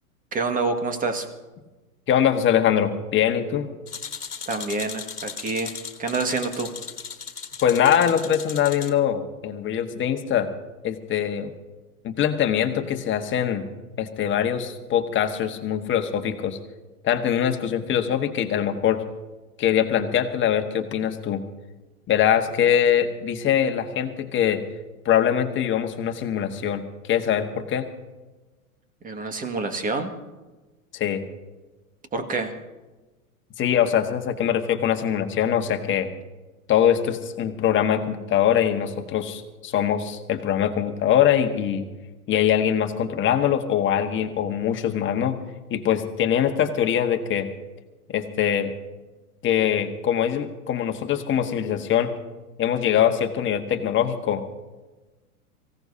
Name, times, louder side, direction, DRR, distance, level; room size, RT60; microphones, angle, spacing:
voice 1, 0.3-1.3 4.5-5.7 6.0-6.7 29.0-30.1 32.1-32.5, right 3 dB, 20° right, 6 dB, 1.9 m, -27 dB
voice 2, 2.1-3.7 7.6-10.5 10.8-11.5 12.0-13.7 14.0-16.6 17.0-19.0 19.6-21.4 22.1-24.6 25.0-27.9 30.9-31.2 33.6-36.1 36.7-41.9 42.3-45.4 45.7-47.5 48.1-48.7 49.4-52.1 52.6-54.4, left 9 dB, 25° left, 6 dB, 1.5 m, -23 dB
sound 1, 3.9-8.9, left 6 dB, 90° left, 1.6 m, -37 dB
24.5 x 16.5 x 2.8 m, 1.2 s
hypercardioid pair, 105°, 44 cm